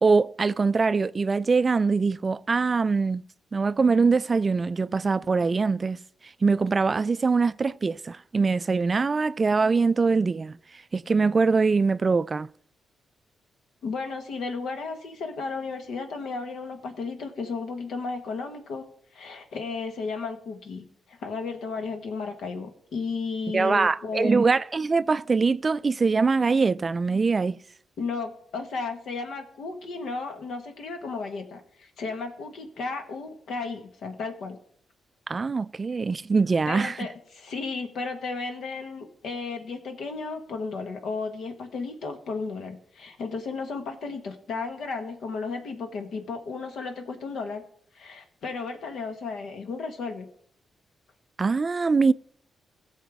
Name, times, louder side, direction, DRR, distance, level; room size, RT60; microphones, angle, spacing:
voice 1, 0.0-3.2 3.5-6.0 6.4-10.6 10.9-12.5 23.5-27.6 35.3-37.0 51.4-52.1, right 4 dB, 40° right, 0.3 m, -23 dB
voice 2, 13.8-18.8 19.1-24.4 28.0-34.6 36.7-47.6 47.9-50.3, left 4 dB, 70° left, 1.4 m, -34 dB
17.0 x 6.7 x 3.5 m
hypercardioid pair, 45°, 0 cm